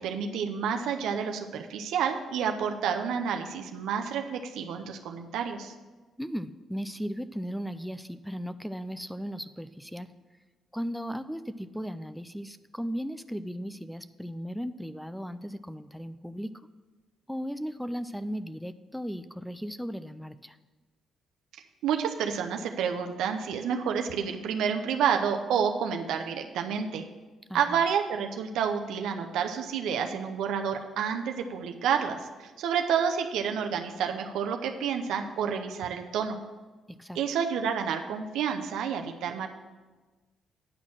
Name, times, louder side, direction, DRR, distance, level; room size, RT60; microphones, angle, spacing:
voice 1, 0.0-5.7 21.8-27.0 27.5-36.4 37.1-39.5, right 7 dB, 85° right, 5 dB, 0.6 m, -29 dB
voice 2, 6.2-10.1 10.7-16.5 17.3-20.6 27.5-27.8 36.9-37.2, equal, ahead, 13 dB, 0.3 m, -36 dB
9.8 x 4.3 x 7.2 m, 1.3 s
cardioid pair, 90°, 0 cm